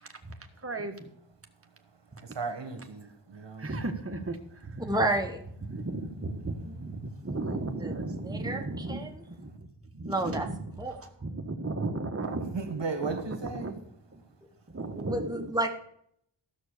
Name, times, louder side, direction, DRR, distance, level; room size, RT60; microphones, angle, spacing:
voice 1, 0.6-0.9 2.1-2.2 3.6-4.9 5.6-10.7 11.0-12.6 13.0-13.7 14.1-14.2 14.7-15.5, right 2 dB, 30° right, 1.5 m, -35 dB
voice 2, 2.2-3.7 6.5-6.9 12.5-13.7, right 4 dB, 65° right, 1.9 m, -36 dB
voice 3, 4.9-5.4 7.5-7.9 8.2-9.1 10.1-10.5 10.8-11.0 14.9-15.7, right 1 dB, 10° right, 1.3 m, -30 dB
13.5 x 6.3 x 6.7 m
wide cardioid pair, 55°, 46 cm